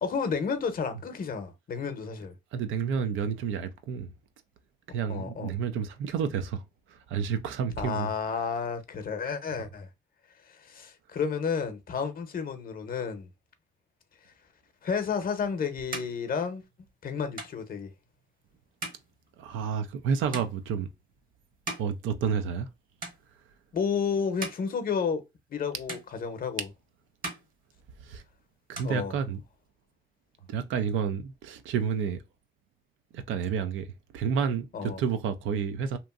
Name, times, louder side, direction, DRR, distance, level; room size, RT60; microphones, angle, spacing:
voice 1, 0.0-2.3 5.1-5.5 7.8-9.9 10.5-13.3 14.8-16.6 17.0-17.9 23.7-25.2 25.5-26.7 28.8-29.1 34.7-35.0, left 6 dB, 45° left, 0.7 m, -31 dB
voice 2, 2.5-4.1 4.9-8.3 9.5-9.6 19.4-20.9 21.8-22.7 28.0-28.2 28.7-29.4 30.5-32.2 33.1-36.0, right 6 dB, 80° right, 0.5 m, -30 dB
sound 1, 15.0-22.7 23.0-23.7 24.1-25.6 25.9-26.8 27.1-28.3 28.5-29.7, right 2 dB, 45° right, 1.0 m, -43 dB
2.9 x 2.5 x 2.4 m
cardioid pair, 90°, 20 cm